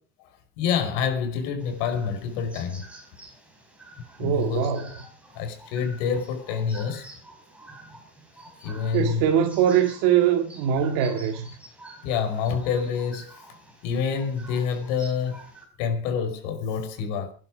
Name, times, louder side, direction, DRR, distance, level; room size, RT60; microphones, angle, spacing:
voice 1, 0.6-2.9 4.2-4.7 5.3-7.1 8.6-9.2 12.0-13.4 13.8-15.4 15.8-17.3, left 6 dB, 80° left, 5.2 m, -27 dB
sound 1, 1.6-15.6, right 2 dB, 5° right, 5.0 m, -48 dB
voice 2, 4.2-4.9 8.9-11.6, right 9 dB, 65° right, 2.0 m, -22 dB
24.5 x 11.0 x 5.0 m
cardioid pair, 170°, 36 cm